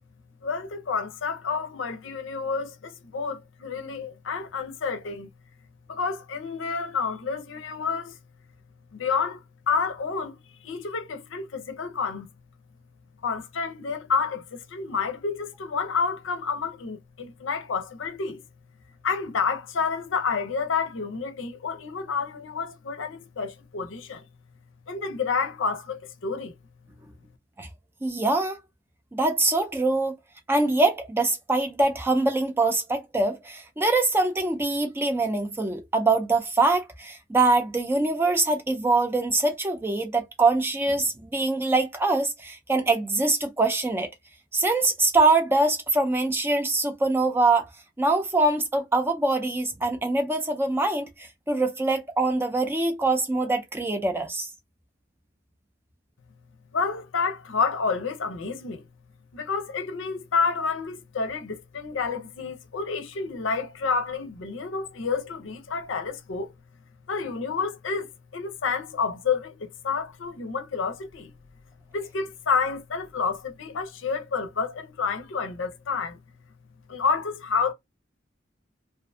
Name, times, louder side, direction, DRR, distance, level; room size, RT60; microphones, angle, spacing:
voice 1, 0.4-5.3 5.9-8.2 8.9-10.3 10.6-12.3 13.2-18.4 19.0-24.2 24.9-26.5 56.7-58.8 59.3-66.5 67.1-71.3 71.9-76.2 76.9-77.7, left 5 dB, 80° left, 0.5 m, -29 dB
voice 2, 28.0-28.6 29.1-30.2 30.5-44.1 44.5-47.7 48.0-51.1 51.5-54.5, right 2 dB, 10° right, 0.3 m, -23 dB
2.5 x 2.4 x 2.2 m
head